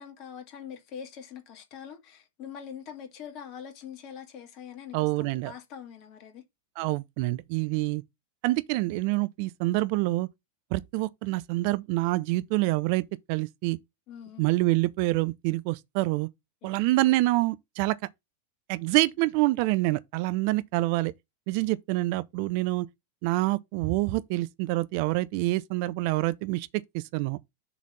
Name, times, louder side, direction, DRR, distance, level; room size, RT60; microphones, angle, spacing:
voice 1, 0.0-6.4 14.1-14.5 16.6-16.8, left 8 dB, 40° left, 2.6 m, -43 dB
voice 2, 4.9-5.5 6.8-8.0 8.4-10.3 10.7-13.8 14.4-16.3 16.6-18.0 18.7-21.1 21.5-22.9 23.2-27.4, right 19 dB, 45° right, 0.4 m, -26 dB
6.9 x 4.1 x 6.0 m
figure-of-eight pair, 90°, 0 cm